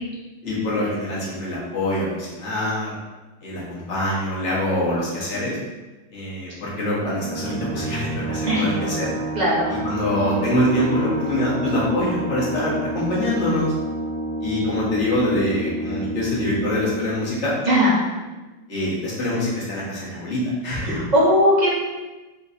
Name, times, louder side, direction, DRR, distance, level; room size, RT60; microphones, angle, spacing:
voice 1, 0.4-2.9 3.4-5.6 6.1-9.1 9.8-13.7 14.4-17.6 18.7-21.1, left 1 dB, 45° left, -6 dB, 1.4 m, -24 dB
sound 1, 7.0-18.3, right 1 dB, 90° right, 1.3 m, -30 dB
voice 2, 9.3-9.7 17.7-18.0 20.8-21.7, equal, 35° right, -7 dB, 0.7 m, -18 dB
4.1 x 3.7 x 2.7 m, 1.2 s
omnidirectional pair, 1.9 m